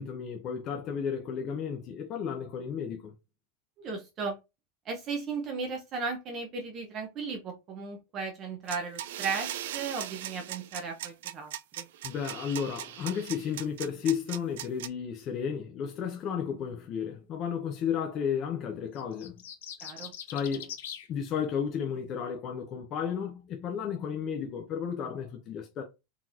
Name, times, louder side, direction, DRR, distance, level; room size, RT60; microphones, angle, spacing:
voice 1, 0.0-3.1 12.0-19.4 20.3-20.7 21.1-25.8, left 7 dB, 25° left, 0.5 m, -33 dB
voice 2, 3.8-4.4 4.9-11.5 11.8-11.9 19.8-20.1, right 4 dB, 25° right, 0.6 m, -36 dB
sound 1, 8.7-14.9, right 12 dB, 70° right, 0.3 m, -39 dB
sound 2, 19.0-21.1, left 9 dB, 85° left, 0.7 m, -42 dB
3.8 x 2.9 x 2.4 m
supercardioid pair, 170°, 0 cm